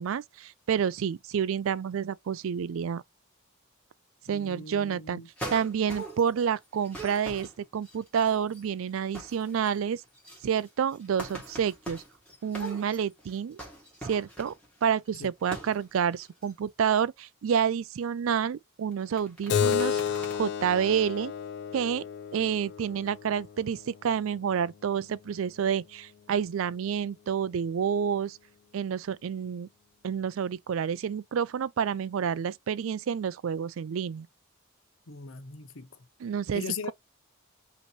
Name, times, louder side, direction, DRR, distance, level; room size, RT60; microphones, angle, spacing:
voice 1, 0.0-3.0 4.3-5.2 5.5-10.0 10.4-12.0 12.4-13.6 14.0-14.5 14.8-21.3 21.7-22.0 22.3-28.4 28.7-29.7 30.0-34.3 36.2-36.9, right 7 dB, 75° right, 0.4 m, -29 dB
voice 2, 4.3-5.3 15.2-15.3 35.1-35.9 36.5-36.9, left 5 dB, 70° left, 0.8 m, -38 dB
sound 1, 5.4-6.4 6.7-8.6 8.9-9.7 9.9-14.8 15.4-15.8 16.1-16.5 18.9-20.4, right 1 dB, 5° left, 1.8 m, -42 dB
Keyboard (musical), 19.5-24.6, left 8 dB, 50° left, 0.3 m, -32 dB
5.2 x 3.0 x 3.0 m
head